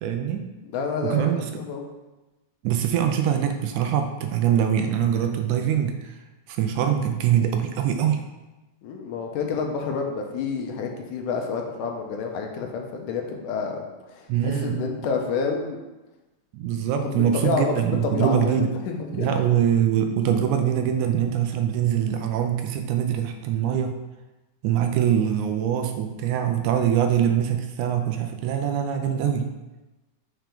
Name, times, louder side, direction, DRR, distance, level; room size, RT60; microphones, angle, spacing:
voice 1, 0.0-0.5 1.0-1.5 2.6-6.2 6.5-8.3 14.3-14.9 16.5-18.7 19.1-23.9 24.6-29.5, right 9 dB, 80° right, 6 dB, 1.9 m, -23 dB
voice 2, 0.7-1.8 8.8-15.8 17.0-19.3, left 5 dB, 80° left, 2 dB, 2.4 m, -29 dB
6.0 x 4.5 x 5.2 m, 1.1 s
omnidirectional pair, 3.6 m